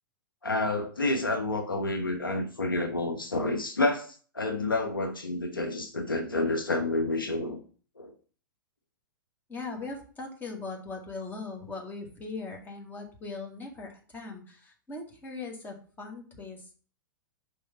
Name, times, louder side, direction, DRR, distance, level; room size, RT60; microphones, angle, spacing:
voice 1, 0.4-7.6 8.0-8.1, left 2 dB, 85° left, 1.0 m, -29 dB
voice 2, 9.5-16.7, left 3 dB, 15° left, 1.9 m, -40 dB
5.5 x 3.6 x 5.7 m
figure-of-eight pair, 105°, 11 cm